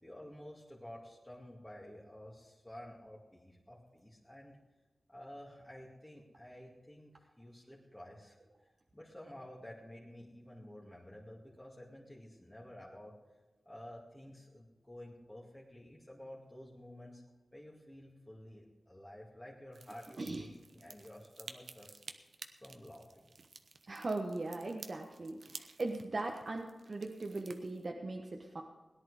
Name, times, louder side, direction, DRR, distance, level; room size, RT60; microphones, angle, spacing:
voice 1, 0.0-4.6 5.1-7.1 7.4-8.4 8.9-13.1 13.7-17.2 17.5-22.0 22.6-23.3, left 1 dB, 10° left, -5 dB, 2.3 m, -52 dB
sound 1, 19.7-27.9, right 4 dB, 80° right, 0.8 m, -53 dB
voice 2, 23.9-28.6, right 2 dB, 55° right, 1 dB, 1.2 m, -39 dB
17.0 x 10.5 x 4.9 m, 1.2 s
wide cardioid pair, 60°, 0 cm